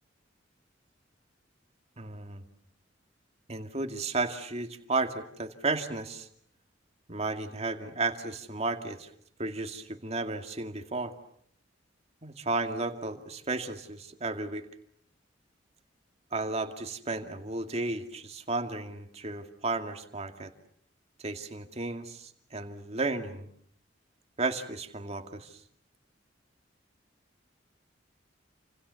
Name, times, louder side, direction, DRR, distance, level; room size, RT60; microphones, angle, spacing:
voice 1, 2.0-2.4 3.5-6.3 7.1-9.1 9.4-11.1 12.2-14.7 16.3-20.5 21.2-23.5 24.4-25.6, right 3 dB, 35° right, 6 dB, 2.3 m, -33 dB
29.0 x 27.0 x 7.1 m, 0.65 s
head